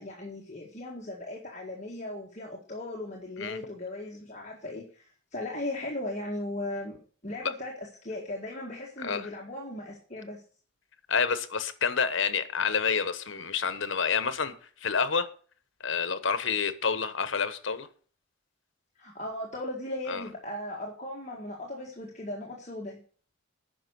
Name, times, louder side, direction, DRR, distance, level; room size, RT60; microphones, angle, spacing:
voice 1, 0.0-10.4 19.0-23.0, left 1 dB, 35° left, 1.8 m, -37 dB
voice 2, 11.1-14.6 14.8-15.3 15.8-17.9 20.1-20.2, left 6 dB, 75° left, 1.1 m, -28 dB
9.9 x 6.0 x 8.2 m
head